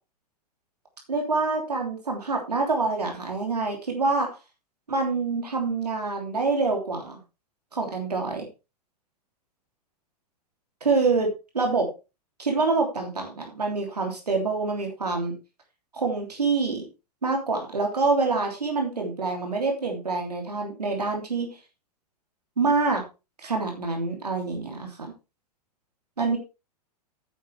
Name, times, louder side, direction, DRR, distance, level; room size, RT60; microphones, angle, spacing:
voice 1, 1.1-4.3 4.9-7.2 7.7-8.5 10.8-11.3 11.5-11.9 12.4-15.3 15.9-16.9 17.2-21.6 22.6-23.0 23.4-25.1 26.2-26.4, right 3 dB, 75° right, 2 dB, 3.2 m, -26 dB
11.0 x 8.8 x 3.4 m, 0.29 s
figure-of-eight pair, 100°, 20 cm